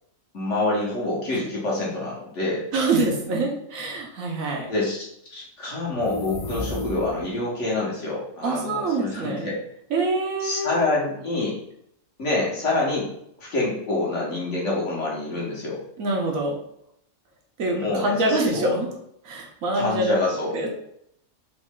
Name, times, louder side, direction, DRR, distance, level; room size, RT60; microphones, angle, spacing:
voice 1, 0.3-2.7 4.7-9.6 10.4-11.6 12.2-13.1 13.4-15.8 17.6-18.8 19.7-20.6, left 2 dB, 60° left, -4 dB, 1.7 m, -27 dB
voice 2, 2.7-4.7 8.4-9.5 9.9-10.9 16.0-16.6 17.6-18.9 19.2-20.2 20.5-20.7, right 2 dB, 70° right, 0 dB, 1.3 m, -25 dB
sound 1, 5.9-7.4, left 3 dB, 80° left, 1.2 m, -33 dB
4.2 x 3.1 x 3.7 m, 0.73 s
omnidirectional pair, 1.5 m